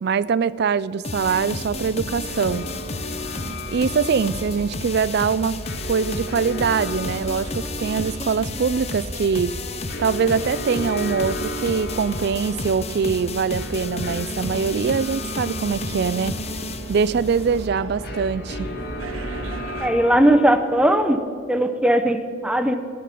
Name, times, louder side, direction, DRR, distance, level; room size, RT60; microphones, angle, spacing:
voice 1, 0.0-2.6 3.7-5.6 5.9-9.5 10.0-16.4 16.9-18.7, right 6 dB, 50° right, 19 dB, 0.3 m, -23 dB
sound 1, 1.0-17.7, left 2 dB, 30° left, 0.7 m, -32 dB
sound 2, 1.2-19.9, right 1 dB, 85° right, 1.3 m, -37 dB
sound 3, 2.2-21.1, left 2 dB, 50° left, 1.5 m, -37 dB
voice 2, 19.8-21.2 21.5-22.8, right 1 dB, 5° right, 7 dB, 0.7 m, -18 dB
16.0 x 10.0 x 5.9 m, 2.6 s
head